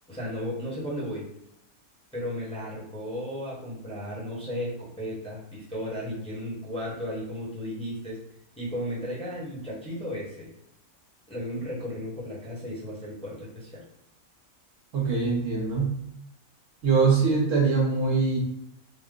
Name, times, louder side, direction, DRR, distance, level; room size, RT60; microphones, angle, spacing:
voice 1, 0.1-1.2 2.1-8.2 8.6-10.5 11.3-13.8, equal, 5° left, -6 dB, 1.0 m, -34 dB
voice 2, 14.9-15.9 16.8-18.4, right 4 dB, 65° right, -2 dB, 1.1 m, -23 dB
3.5 x 2.1 x 3.7 m, 0.80 s
omnidirectional pair, 1.5 m